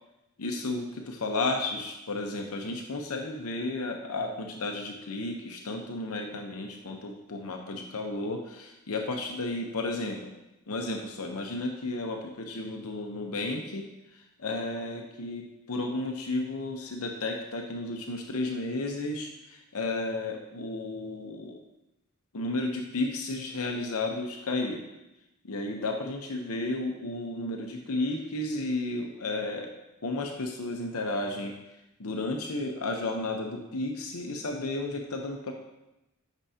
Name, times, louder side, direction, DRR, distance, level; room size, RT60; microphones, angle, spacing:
voice 1, 0.4-10.3 10.7-21.6 22.3-24.8 25.4-29.7 30.0-31.6 32.0-35.5, left 2 dB, 80° left, 2 dB, 0.8 m, -33 dB
9.1 x 6.1 x 2.8 m, 0.92 s
head